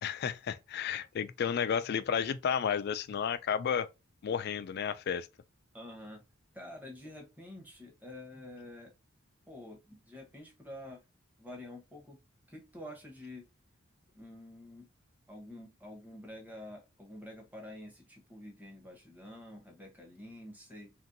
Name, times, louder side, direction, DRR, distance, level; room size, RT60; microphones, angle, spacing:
voice 1, 0.0-3.9 4.2-5.3, left 7 dB, 50° left, 0.3 m, -32 dB
voice 2, 5.7-6.2 6.5-8.9 9.5-11.0 11.4-12.2 12.5-13.5 14.1-14.9 15.3-20.9, left 1 dB, 10° right, 0.9 m, -48 dB
2.9 x 2.6 x 2.6 m
head